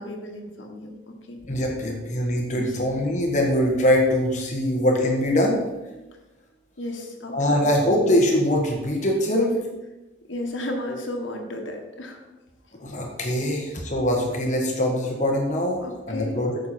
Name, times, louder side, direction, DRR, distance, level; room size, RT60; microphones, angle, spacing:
voice 1, 0.0-1.4 2.5-2.8 4.6-4.7 6.8-7.6 9.3-9.4 10.3-12.2 13.4-13.6 15.8-16.4, left 1 dB, 75° left, 2 dB, 1.5 m, -34 dB
voice 2, 1.5-5.9 7.3-9.5 12.8-16.6, left 1 dB, 40° left, 0 dB, 1.5 m, -23 dB
9.6 x 6.6 x 4.4 m, 1.1 s
head